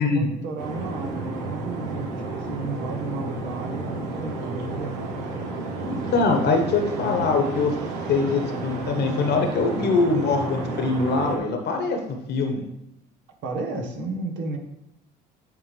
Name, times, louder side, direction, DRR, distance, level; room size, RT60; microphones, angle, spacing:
voice 1, 0.0-5.2 6.9-7.3 13.4-14.6, right 2 dB, 65° right, 3 dB, 1.2 m, -33 dB
sound 1, 0.6-11.4, right 3 dB, 85° right, 0.9 m, -32 dB
voice 2, 5.8-7.7 8.1-12.7, left 3 dB, 55° left, 4 dB, 1.2 m, -23 dB
8.5 x 3.6 x 3.3 m, 0.79 s
hypercardioid pair, 65°, 20 cm